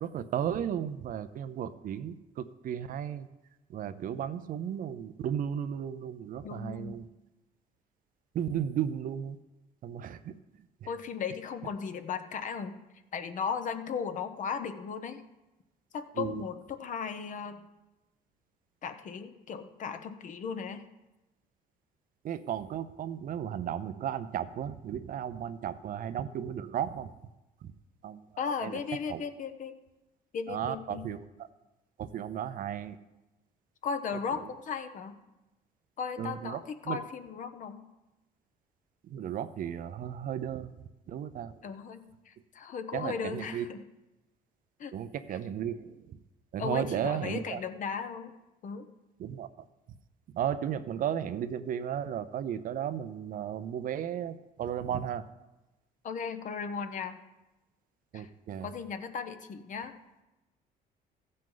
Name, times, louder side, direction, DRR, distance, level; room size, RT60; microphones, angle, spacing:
voice 1, 0.0-3.3 3.7-7.1 8.3-9.4 9.8-10.3 16.2-16.4 22.2-27.1 28.0-28.2 28.6-28.8 29.1-29.2 30.5-31.2 32.0-33.0 36.2-36.6 36.9-37.0 39.1-40.7 41.1-41.5 42.9-43.7 44.9-46.2 46.5-47.6 49.2-49.5 50.3-55.3 58.1-58.7, right 9 dB, 55° right, 12 dB, 0.6 m, -34 dB
voice 2, 6.4-7.0 10.9-12.8 13.1-15.2 15.9-17.7 18.8-20.8 28.4-29.8 30.3-31.1 33.8-35.2 36.0-37.8 41.6-43.8 44.8-44.9 45.3-45.4 46.6-48.3 48.6-48.9 56.0-57.2 58.1-58.3 58.6-59.9, left 6 dB, 50° left, 8 dB, 0.9 m, -36 dB
14.5 x 7.5 x 3.9 m, 1.0 s
cardioid pair, 110°, 17 cm